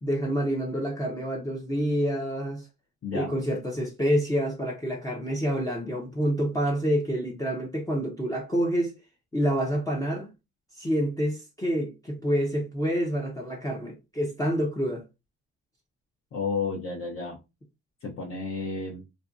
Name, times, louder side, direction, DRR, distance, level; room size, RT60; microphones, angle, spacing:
voice 1, 0.0-2.7 3.1-8.9 9.3-10.3 10.8-15.0, equal, 10° left, 0.6 m, -27 dB
voice 2, 3.0-3.4 16.3-17.4 18.0-19.1, left 4 dB, 45° left, 0.7 m, -32 dB
2.5 x 2.2 x 2.5 m
cardioid pair, 90°, 30 cm